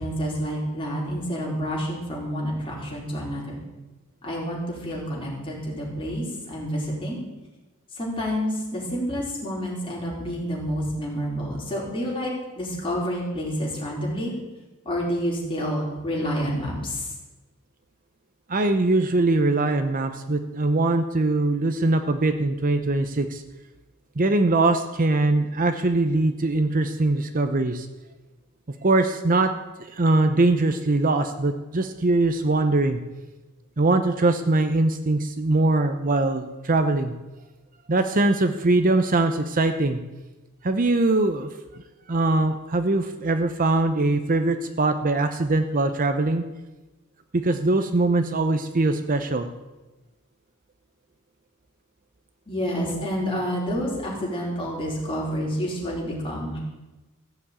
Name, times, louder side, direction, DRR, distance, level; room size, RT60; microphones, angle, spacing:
voice 1, 0.0-3.6 4.2-7.2 7.9-14.3 14.8-17.1 52.5-56.6, equal, 25° left, -4 dB, 4.4 m, -29 dB
voice 2, 18.5-23.4 24.2-27.9 28.8-29.5 29.9-33.0 33.8-37.1 37.9-40.0 40.6-41.8 42.1-46.4 47.3-49.5, right 2 dB, 40° right, 8 dB, 0.7 m, -22 dB
15.5 x 7.1 x 8.6 m, 1.1 s
head